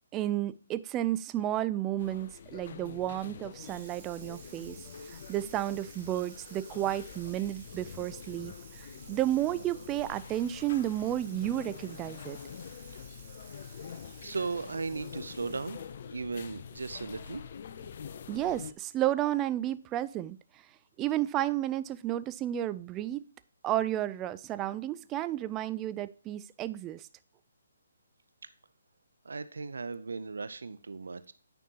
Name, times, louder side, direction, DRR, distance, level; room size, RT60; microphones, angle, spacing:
voice 1, 0.1-4.8 5.1-12.4 18.3-20.4 21.0-23.2 23.6-27.1, right 13 dB, 20° right, 15 dB, 0.3 m, -32 dB
sound 1, 2.0-18.7, left 7 dB, 45° left, 0.6 m, -46 dB
Water tap faucet / Sink (filling or washing), 3.5-16.0, right 7 dB, 35° right, 1.4 m, -55 dB
voice 2, 14.2-15.8 16.1-17.4 29.2-31.3, right 4 dB, 75° right, 14 dB, 0.6 m, -36 dB
9.3 x 5.3 x 2.9 m, 0.42 s
hypercardioid pair, 150°, 0 cm